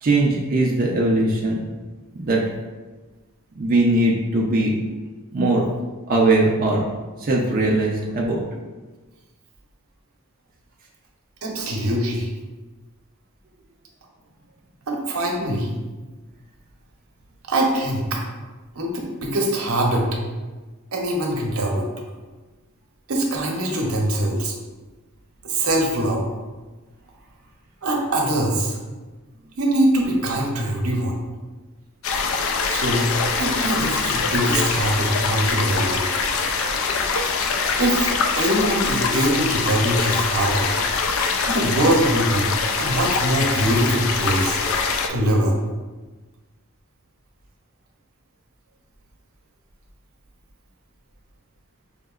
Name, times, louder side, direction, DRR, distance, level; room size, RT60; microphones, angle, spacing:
voice 1, 0.0-1.6 2.2-2.4 3.6-4.8 5.3-5.7 6.1-6.8 7.2-8.4, right 2 dB, 40° right, -3 dB, 0.4 m, -20 dB
voice 2, 11.4-12.3 14.9-15.7 17.5-18.2 18.8-20.1 20.9-21.9 23.1-24.5 25.4-26.2 27.8-28.8 29.6-31.2 32.6-33.1 33.4-36.0 37.8-40.6 41.5-44.6 45.1-45.6, right 1 dB, 80° right, 0 dB, 0.7 m, -22 dB
sound 1, 32.0-45.1, left 4 dB, 65° left, 0.4 m, -23 dB
5.0 x 2.8 x 2.3 m, 1.3 s
head